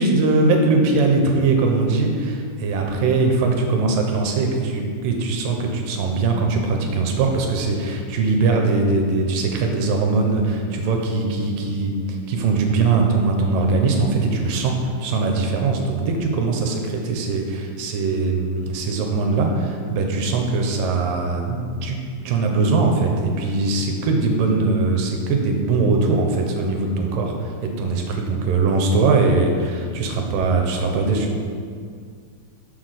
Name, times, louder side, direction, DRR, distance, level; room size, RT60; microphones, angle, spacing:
voice 1, 0.0-22.0 22.3-31.3, right 3 dB, 80° right, 2 dB, 2.6 m, -21 dB
6.9 x 6.0 x 6.5 m, 2.1 s
omnidirectional pair, 4.0 m